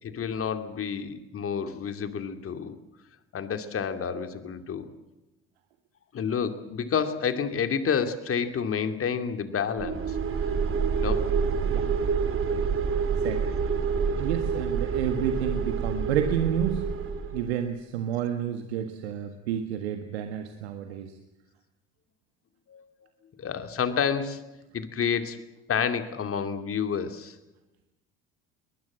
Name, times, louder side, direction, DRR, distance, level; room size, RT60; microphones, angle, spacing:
voice 1, 0.0-2.8 3.3-4.9 6.1-10.2 11.0-11.3 12.3-12.4 22.7-22.8 23.4-24.4 24.7-25.4 25.7-27.3, left 7 dB, 45° left, 9 dB, 2.7 m, -29 dB
sound 1, 9.8-17.5, right 6 dB, 40° right, 2.3 m, -27 dB
voice 2, 13.2-13.6 14.1-16.9 17.3-21.1, right 9 dB, 85° right, 7 dB, 1.7 m, -30 dB
23.0 x 20.5 x 7.6 m, 1.0 s
hypercardioid pair, 65°, 31 cm